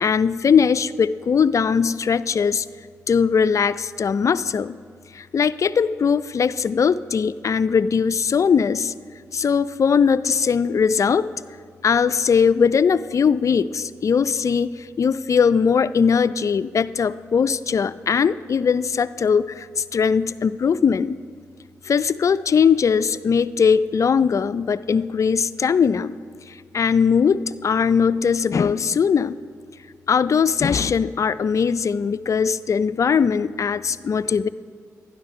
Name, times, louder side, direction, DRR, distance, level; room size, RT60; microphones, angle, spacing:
voice 1, 0.0-2.7 3.1-4.8 5.1-8.9 9.3-11.3 11.8-21.2 21.8-26.1 26.5-29.4 30.1-34.5, left 6 dB, 50° left, 15 dB, 0.3 m, -20 dB
12.0 x 10.5 x 3.1 m, 2.1 s
supercardioid pair, 40°, 7 cm